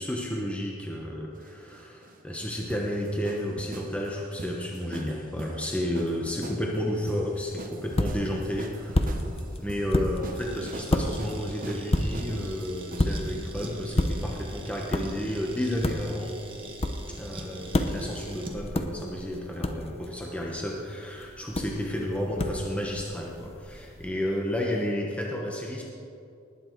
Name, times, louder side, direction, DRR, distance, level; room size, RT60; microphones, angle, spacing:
voice 1, 0.0-9.2 9.6-16.4 17.2-25.8, equal, 5° left, -2 dB, 1.0 m, -32 dB
sound 1, 1.3-13.4, right 1 dB, 40° right, 1.0 m, -43 dB
sound 2, 7.3-24.1, left 1 dB, 30° left, 0.7 m, -32 dB
sound 3, 10.4-18.6, right 2 dB, 25° right, 1.2 m, -44 dB
19.5 x 8.9 x 4.6 m, 2.5 s
head